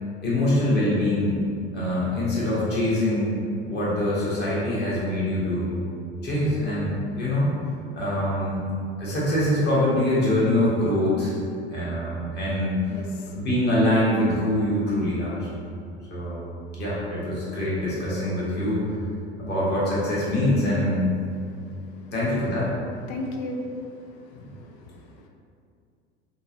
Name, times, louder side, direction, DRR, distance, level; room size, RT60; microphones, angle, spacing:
voice 1, 0.2-1.4 1.7-3.3 3.6-5.8 6.2-7.5 8.0-8.6 9.0-11.3 11.7-12.9 13.3-15.4 16.1-16.4 16.8-19.0 19.4-21.1 22.1-22.7, left 1 dB, 30° left, -7 dB, 1.3 m, -24 dB
voice 2, 12.9-13.4 21.4-22.3 23.1-25.3, left 2 dB, 45° left, 2 dB, 0.5 m, -37 dB
5.3 x 2.4 x 2.7 m, 2.3 s
figure-of-eight pair, 75°, 33 cm